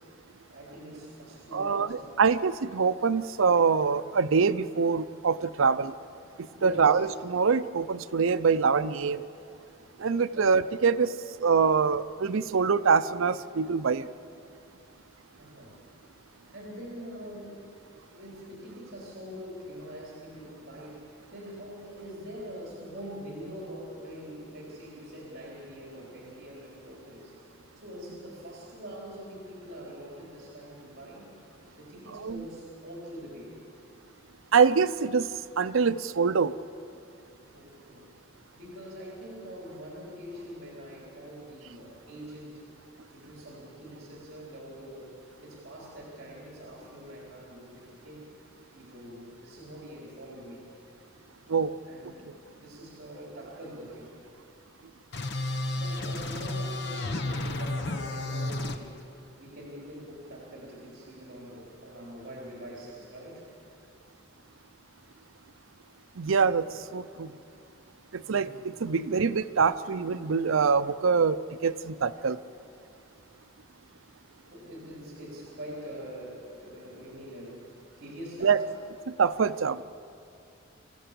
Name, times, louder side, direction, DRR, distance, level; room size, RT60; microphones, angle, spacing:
voice 1, 0.5-2.1 6.5-7.0 10.3-10.6 15.3-15.8 16.5-17.7 18.1-27.3 27.7-31.3 31.8-33.6 37.5-38.1 38.6-42.7 43.1-48.3 48.7-50.6 51.8-54.2 55.5-59.1 59.3-63.4 66.8-66.9 68.2-68.7 74.5-77.7 78.0-78.6, equal, 50° right, -4 dB, 4.1 m, -44 dB
voice 2, 1.5-5.9 6.6-9.2 10.0-11.1 11.4-14.1 32.1-32.4 34.5-35.3 35.6-36.5 51.5-51.7 66.2-66.7 66.9-67.3 68.1-72.4 78.4-78.6 79.2-79.8, right 5 dB, 75° right, 14 dB, 0.6 m, -24 dB
sound 1, 55.1-58.8, left 2 dB, 55° left, 1.1 m, -32 dB
26.0 x 15.0 x 6.9 m, 2.5 s
head